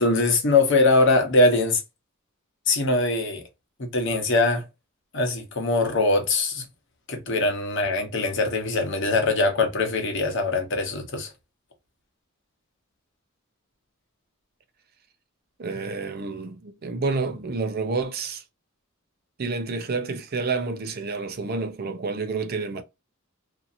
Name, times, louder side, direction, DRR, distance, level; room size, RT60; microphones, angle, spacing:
voice 1, 0.0-1.8 2.7-3.4 3.9-4.6 5.1-6.6 7.1-11.3, left 2 dB, 60° left, 1.0 m, -22 dB
voice 2, 15.6-18.4 19.4-22.8, right 4 dB, 45° right, 0.5 m, -29 dB
2.7 x 2.7 x 2.5 m
head